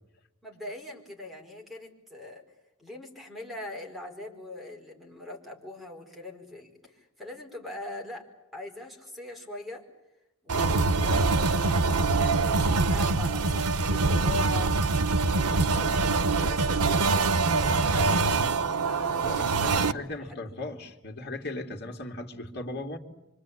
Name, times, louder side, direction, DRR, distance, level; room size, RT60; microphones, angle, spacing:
voice 1, 0.4-2.4 2.8-9.8 10.4-15.0 15.3-18.3 18.8-19.9 20.3-20.6, left 2 dB, ahead, 5.0 m, -42 dB
sound 1, 10.5-19.9, right 3 dB, 90° right, 0.9 m, -24 dB
voice 2, 19.2-23.0, left 2 dB, 50° left, 2.9 m, -37 dB
26.0 x 25.5 x 8.8 m
head